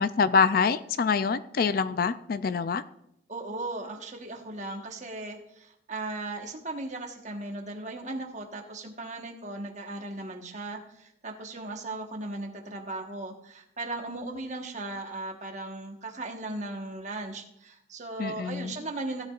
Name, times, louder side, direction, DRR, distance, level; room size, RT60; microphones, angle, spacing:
voice 1, 0.0-2.8 18.2-18.8, left 5 dB, 50° left, 0.4 m, -25 dB
voice 2, 3.3-19.3, right 2 dB, 40° right, 1.3 m, -37 dB
16.5 x 10.5 x 2.4 m
head